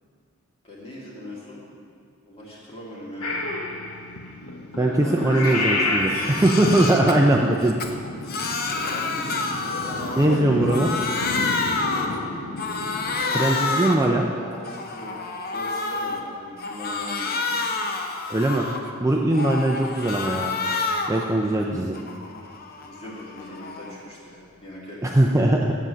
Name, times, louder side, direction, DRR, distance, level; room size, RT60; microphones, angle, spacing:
voice 1, 0.6-1.6 2.2-3.4 4.8-6.4 6.9-7.1 8.6-11.3 13.0-15.2 15.4-17.6 21.5-22.0 22.8-25.2, left 1 dB, 25° left, -6 dB, 2.2 m, -39 dB
Purr / Meow, 3.2-13.1, left 2 dB, 90° left, 1.1 m, -30 dB
voice 2, 4.8-7.8 10.2-10.9 13.3-14.3 18.3-20.5 21.1-22.0 25.0-25.7, right 1 dB, 15° right, 0 dB, 0.4 m, -21 dB
Crying sobbing, 5.4-5.6 6.0-7.1 7.6-10.4 10.6-12.2 12.6-14.1 14.5-16.2 16.6-18.9 19.3-21.2 21.6-24.0, left 3 dB, 45° left, 0.7 m, -29 dB
7.9 x 7.3 x 6.3 m, 2.3 s
head